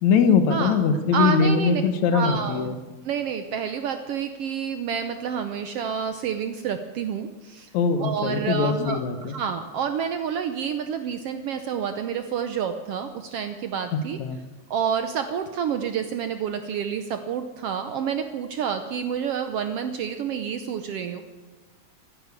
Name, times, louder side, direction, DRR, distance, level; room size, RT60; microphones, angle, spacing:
voice 1, 0.0-2.8 7.7-9.4 13.9-14.4, left 5 dB, 75° left, 9 dB, 2.4 m, -22 dB
voice 2, 1.1-1.8 2.1-2.7 3.0-7.7 8.0-14.2 14.7-21.2, right 7 dB, 75° right, 8 dB, 1.5 m, -29 dB
14.5 x 10.0 x 8.3 m, 1.3 s
omnidirectional pair, 3.4 m